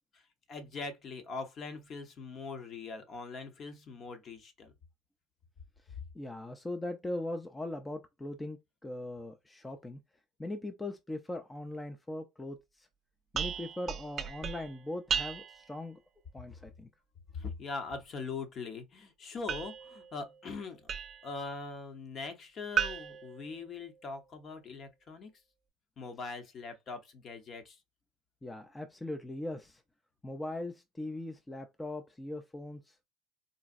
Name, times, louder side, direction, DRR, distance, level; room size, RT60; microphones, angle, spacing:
voice 1, 0.5-4.7 17.3-21.0 21.2-25.3 26.0-27.8, left 4 dB, 45° left, 1.0 m, -42 dB
voice 2, 6.1-10.0 10.4-12.9 13.3-16.0 16.3-16.9 28.4-29.8 30.2-32.9, left 1 dB, 15° left, 0.5 m, -40 dB
sound 1, 13.3-15.7 19.5-21.4 22.8-24.2, right 7 dB, 45° right, 0.5 m, -36 dB
4.0 x 2.2 x 2.5 m
supercardioid pair, 95°, 0 cm